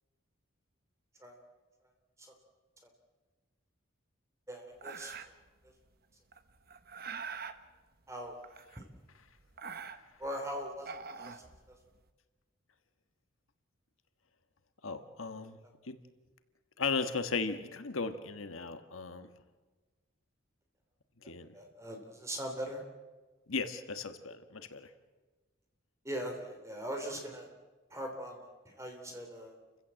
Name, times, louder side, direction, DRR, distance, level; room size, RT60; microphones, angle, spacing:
voice 1, 4.5-5.1 8.1-8.4 8.8-8.9 10.2-10.9 11.2-11.8 21.5-22.8 26.0-27.5 27.9-29.6, equal, 15° right, 3 dB, 3.4 m, -41 dB
sound 1, 4.8-5.5 6.3-7.6 8.4-9.1 9.4-10.3 10.7-12.0, right 5 dB, 50° right, 1.0 m, -44 dB
voice 2, 14.8-15.6 15.8-16.0 16.8-19.3 21.2-21.5 23.5-24.9, left 4 dB, 85° left, 9 dB, 1.5 m, -36 dB
29.0 x 15.5 x 7.6 m, 1.3 s
head